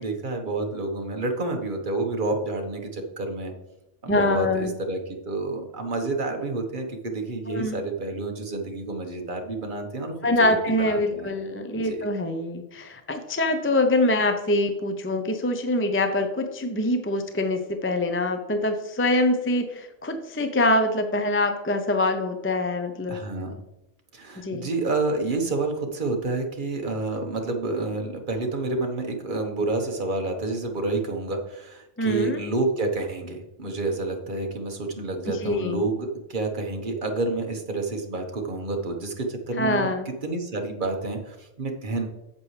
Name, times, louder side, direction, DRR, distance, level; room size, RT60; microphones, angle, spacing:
voice 1, 0.0-3.5 4.0-10.1 10.8-11.3 11.8-12.1 23.1-23.6 24.1-39.9 40.2-42.1, right 3 dB, 45° right, 3 dB, 1.4 m, -29 dB
voice 2, 4.1-4.7 7.5-7.8 10.2-23.2 24.4-24.7 32.0-32.4 35.3-35.8 39.6-40.1, left 1 dB, 15° left, 6 dB, 0.4 m, -24 dB
8.2 x 7.6 x 3.3 m, 0.91 s
omnidirectional pair, 1.2 m